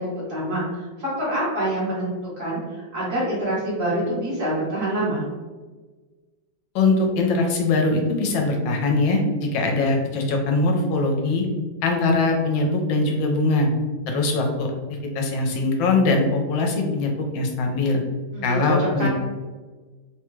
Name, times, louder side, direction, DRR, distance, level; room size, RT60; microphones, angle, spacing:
voice 1, 0.0-5.2 18.3-19.1, right 1 dB, 45° right, -8 dB, 1.5 m, -26 dB
voice 2, 6.7-11.5 11.8-13.7 14.1-14.7 15.1-18.0 18.4-19.1, left 3 dB, 85° left, 1 dB, 1.4 m, -21 dB
3.6 x 2.3 x 3.0 m, 1.3 s
omnidirectional pair, 2.0 m